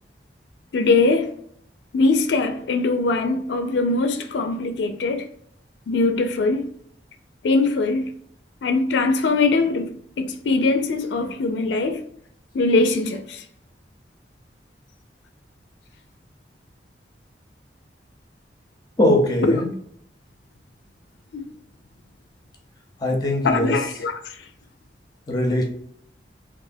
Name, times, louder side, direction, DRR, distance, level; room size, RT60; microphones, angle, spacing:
voice 1, 0.7-1.3 1.9-5.3 5.9-6.7 7.4-8.1 8.6-12.0 12.5-13.4 19.5-19.6 21.3-21.4 23.4-24.4, left 3 dB, 80° left, 0.4 m, -21 dB
voice 2, 19.0-19.7 23.0-23.7 25.3-25.6, left 1 dB, 20° left, 0.7 m, -20 dB
3.3 x 2.5 x 2.6 m
head